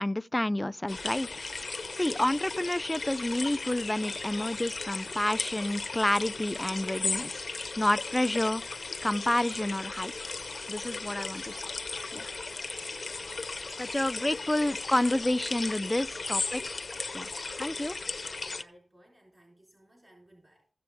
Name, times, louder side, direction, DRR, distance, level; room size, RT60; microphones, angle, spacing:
voice 1, 0.0-1.7 1.9-7.4 7.8-8.6 9.0-10.1 10.7-11.6 12.1-12.3 13.8-16.8 17.1-17.3 17.5-17.9, left 1 dB, 20° left, 0.4 m, -29 dB
sound 1, 0.9-18.6, left 3 dB, 65° left, 0.8 m, -36 dB
sound 2, 6.2-14.0, right 1 dB, 85° right, 4.2 m, -62 dB
voice 2, 13.3-14.5 15.1-15.3 15.8-16.2 17.7-20.7, right 1 dB, 30° right, 3.6 m, -60 dB
16.0 x 6.8 x 3.4 m
cardioid pair, 50°, 0 cm